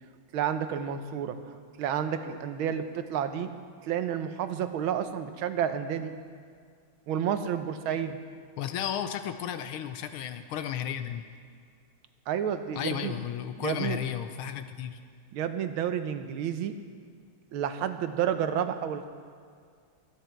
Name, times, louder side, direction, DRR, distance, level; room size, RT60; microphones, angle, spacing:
voice 1, 0.3-3.5 3.8-6.1 7.1-8.2 12.3-13.2 13.6-14.0 15.3-16.7 17.5-19.1, right 9 dB, 80° right, 9 dB, 1.6 m, -30 dB
voice 2, 8.6-11.2 12.7-15.0, left 9 dB, 80° left, 9 dB, 1.6 m, -33 dB
25.5 x 9.3 x 4.5 m, 2.1 s
omnidirectional pair, 2.3 m